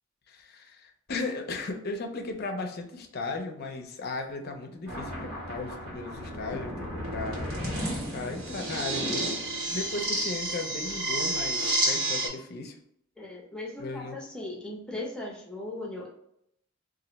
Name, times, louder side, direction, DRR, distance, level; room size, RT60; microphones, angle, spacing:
voice 1, 0.3-7.4 8.1-9.4 9.7-12.8 13.8-14.2, left 3 dB, 50° left, 4 dB, 0.4 m, -36 dB
sound 1, 4.9-12.3, right 1 dB, 80° right, 1.2 m, -31 dB
voice 2, 13.2-16.1, left 2 dB, 5° left, -3 dB, 0.6 m, -38 dB
2.4 x 2.1 x 3.9 m, 0.74 s
head